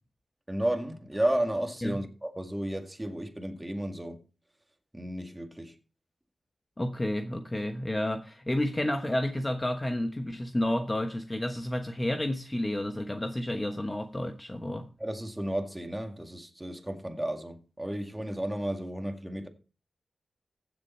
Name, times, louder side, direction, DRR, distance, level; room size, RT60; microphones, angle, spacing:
voice 1, 0.5-4.2 4.9-5.7 15.0-19.5, right 1 dB, 10° right, 2.0 m, -33 dB
voice 2, 6.8-14.9, left 1 dB, 20° left, 1.1 m, -31 dB
15.0 x 6.9 x 4.3 m
wide cardioid pair, 105°, 0 cm